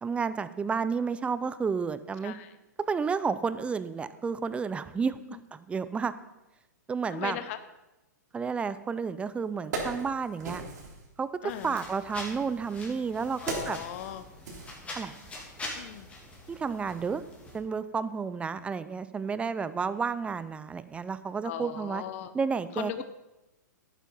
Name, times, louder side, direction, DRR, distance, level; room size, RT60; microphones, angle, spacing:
voice 1, 0.0-2.4 2.9-5.2 5.5-6.1 6.9-7.4 8.3-10.6 11.2-13.8 15.0-15.1 16.5-17.2 17.5-22.0 22.3-23.0, right 5 dB, 10° right, 14 dB, 0.6 m, -31 dB
voice 2, 2.2-2.6 5.3-5.4 7.1-7.6 11.4-11.8 13.4-14.3 15.7-16.1 21.4-22.3 22.7-23.0, left 12 dB, 50° left, 11 dB, 0.8 m, -38 dB
Wood, 8.9-9.0 9.4-11.0 12.0-15.3 15.7-15.8, right 3 dB, 65° right, 3.8 m, -38 dB
sound 1, 11.5-17.6, left 2 dB, 15° left, 3.1 m, -44 dB
11.0 x 9.3 x 5.5 m, 0.99 s
hypercardioid pair, 120°, 10 cm